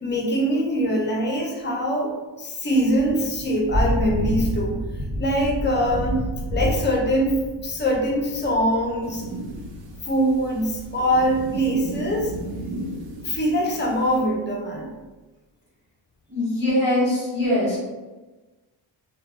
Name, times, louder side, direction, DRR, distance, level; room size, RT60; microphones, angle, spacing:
voice 1, 0.0-4.8 5.2-9.2 10.1-12.3 13.2-14.9, equal, 25° left, -1 dB, 0.3 m, -23 dB
Thunder / Rain, 2.8-12.3, equal, 50° right, 1.2 m, -30 dB
sound 1, 9.0-14.2, right 1 dB, 75° right, 0.5 m, -35 dB
voice 2, 16.3-17.8, left 1 dB, 5° right, -11 dB, 1.0 m, -22 dB
2.5 x 2.1 x 2.8 m, 1.2 s
wide cardioid pair, 145°, 46 cm